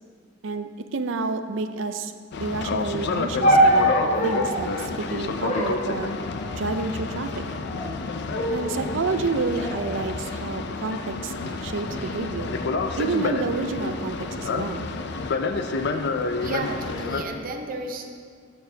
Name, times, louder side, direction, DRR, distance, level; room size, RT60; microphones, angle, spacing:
voice 1, 0.4-2.1 2.4-3.9 4.2-6.1 6.5-7.4 8.5-12.6 13.0-14.9, right 4 dB, 70° right, 9 dB, 0.5 m, -29 dB
Boat Water vehicle, 2.3-17.2, left 3 dB, 60° left, 0.5 m, -29 dB
sound 1, 3.4-4.7 5.5-6.7 7.5-8.0 8.3-8.9 9.6-10.9 11.6-12.1, right 1 dB, 35° left, 1.3 m, -24 dB
voice 2, 16.2-18.1, right 2 dB, 45° right, 3 dB, 0.8 m, -33 dB
12.5 x 6.9 x 2.8 m, 2.1 s
head